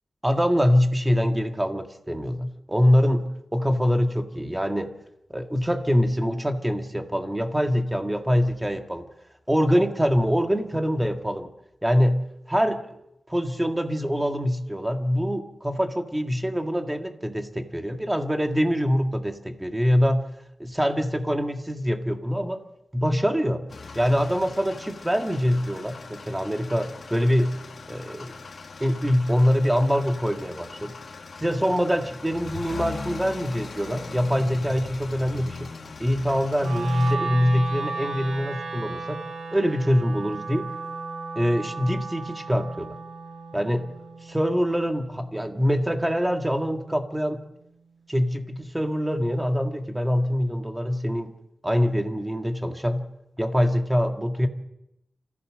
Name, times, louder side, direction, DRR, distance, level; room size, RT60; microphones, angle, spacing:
voice 1, 0.2-3.2 3.5-4.9 5.3-9.0 9.5-11.5 11.8-12.2 12.5-12.8 13.3-20.3 20.6-22.6 22.9-23.6 24.0-27.5 27.9-28.3 28.8-30.9 31.4-35.7 36.0-39.2 39.5-40.7 41.4-43.0 43.5-43.9 44.3-47.4 48.1-51.3 51.6-53.0 53.4-54.5, equal, 10° right, 5 dB, 1.7 m, -24 dB
sound 1, 23.7-37.1, left 4 dB, 50° left, 1.7 m, -40 dB
Wind instrument woodwind instrument, 36.6-46.8, right 4 dB, 80° right, 4.3 m, -35 dB
28.0 x 15.0 x 7.7 m, 0.85 s
wide cardioid pair, 175°, 0 cm